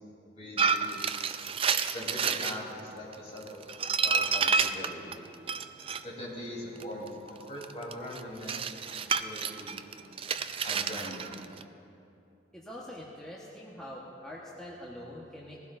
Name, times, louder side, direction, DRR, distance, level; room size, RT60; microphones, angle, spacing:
voice 1, 0.3-1.0 1.9-5.1 6.0-9.8 10.6-11.4, left 1 dB, 35° left, -5 dB, 3.6 m, -41 dB
sound 1, 0.6-2.6 3.1-6.0 6.8-11.6, right 5 dB, 30° right, 0.4 m, -29 dB
voice 2, 12.5-15.6, left 1 dB, 5° left, -7 dB, 1.3 m, -44 dB
20.5 x 16.0 x 2.6 m, 2.7 s
head